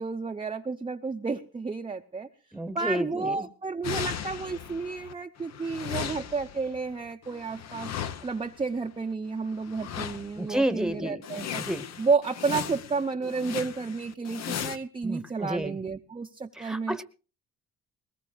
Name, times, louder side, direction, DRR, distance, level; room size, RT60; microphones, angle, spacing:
voice 1, 0.0-2.3 2.7-7.9 8.2-11.6 12.0-17.0, right 4 dB, 20° right, 3 dB, 0.7 m, -31 dB
voice 2, 2.5-3.5 10.4-11.2 11.6-11.9 15.0-15.8 16.6-17.0, right 1 dB, ahead, 13 dB, 1.1 m, -30 dB
sound 1, 3.8-5.1 5.4-8.6 9.6-10.5 10.9-11.0 11.2-14.8, left 9 dB, 60° left, 0.9 m, -37 dB
20.5 x 20.0 x 2.4 m, 0.34 s
cardioid pair, 90°, 30 cm